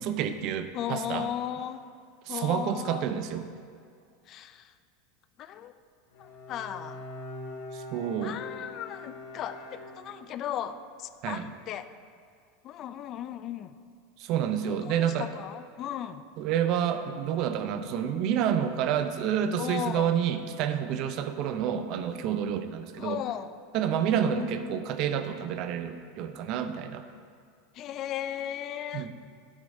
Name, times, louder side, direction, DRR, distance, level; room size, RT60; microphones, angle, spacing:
voice 1, 0.0-1.3 2.3-3.4 7.7-8.4 11.2-11.5 14.2-15.3 16.4-23.2 23.7-27.0 28.9-29.1, right 9 dB, 55° right, 9 dB, 0.6 m, -29 dB
voice 2, 0.7-1.8 2.3-3.1 4.3-4.7 5.4-5.7 6.2-7.0 8.2-11.9 12.6-13.8 14.7-16.2 19.6-20.2 23.0-23.5 24.3-24.8 27.7-29.1, left 10 dB, 45° left, 12 dB, 0.4 m, -36 dB
Bowed string instrument, 6.1-10.5, left 2 dB, 80° left, 1.6 m, -43 dB
9.7 x 8.1 x 2.7 m, 2.2 s
hypercardioid pair, 105°, 0 cm